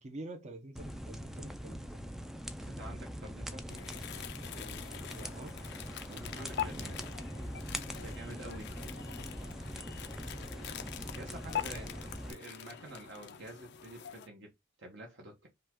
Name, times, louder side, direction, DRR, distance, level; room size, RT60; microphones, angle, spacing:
voice 1, 0.0-2.1 4.5-5.5 6.1-6.6, right 1 dB, 35° right, 0.8 m, -48 dB
sound 1, 0.8-12.3, equal, ahead, 0.4 m, -42 dB
voice 2, 2.6-3.8 6.3-7.0 8.0-8.8 10.9-14.5 14.8-15.5, right 1 dB, 60° right, 1.2 m, -48 dB
sound 2, 3.7-14.3, left 9 dB, 55° left, 0.5 m, -44 dB
5.4 x 2.4 x 3.6 m
head